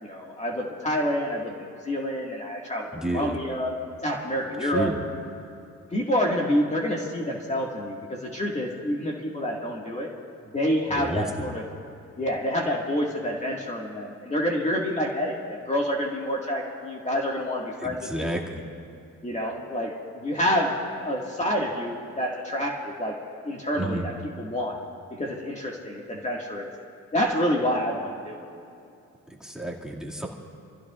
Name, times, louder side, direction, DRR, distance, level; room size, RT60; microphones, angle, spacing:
voice 1, 0.0-3.7 4.0-4.9 5.9-10.1 10.5-11.6 12.2-18.3 19.2-23.1 23.4-24.1 24.4-24.8 25.2-26.7 27.1-28.4, equal, 25° left, -2 dB, 1.9 m, -28 dB
voice 2, 2.9-3.4 4.6-5.0 10.9-11.5 17.8-18.6 23.8-24.1 29.4-30.3, right 1 dB, ahead, -2 dB, 2.2 m, -30 dB
29.0 x 15.0 x 2.5 m, 2.6 s
cardioid pair, 90°, 30 cm